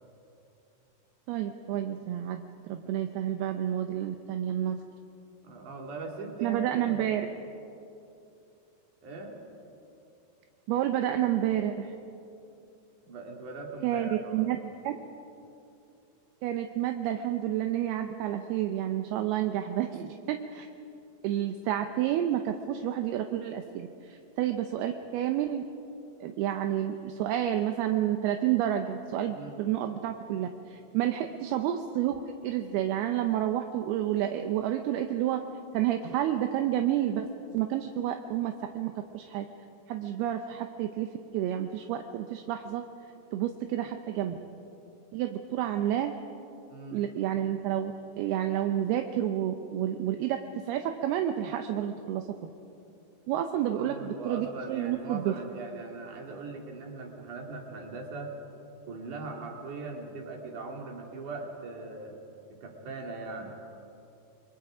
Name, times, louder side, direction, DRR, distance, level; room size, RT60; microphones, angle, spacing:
voice 1, 1.3-2.4 2.7-4.8 6.4-7.3 10.7-11.9 13.8-14.6 14.8-15.0 16.4-20.7 21.2-25.6 26.2-35.4 35.7-37.3 37.5-39.5 39.9-41.1 41.3-42.9 43.3-44.4 45.1-46.1 46.9-52.5 53.3-55.3, right 11 dB, 75° right, 6 dB, 2.5 m, -30 dB
voice 2, 5.4-7.2 9.0-9.4 13.0-14.5 29.3-29.6 46.7-47.0 53.8-58.4 58.9-62.2 62.5-63.5, right 3 dB, 50° right, 1 dB, 3.6 m, -40 dB
29.5 x 22.5 x 5.0 m, 2.7 s
omnidirectional pair, 5.1 m